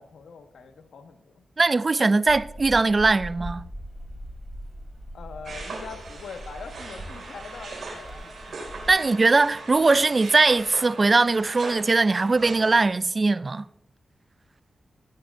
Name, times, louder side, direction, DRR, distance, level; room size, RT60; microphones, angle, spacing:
voice 1, 0.0-1.4 5.1-8.4 8.7-9.1, left 5 dB, 85° left, 1.1 m, -43 dB
voice 2, 1.6-3.6 8.9-13.6, right 3 dB, 40° right, 0.3 m, -20 dB
sound 1, 2.3-8.9, equal, ahead, 3.2 m, -41 dB
sound 2, 5.4-12.8, right 3 dB, 75° right, 4.7 m, -40 dB
18.0 x 10.0 x 2.6 m
cardioid pair, 60°, 0 cm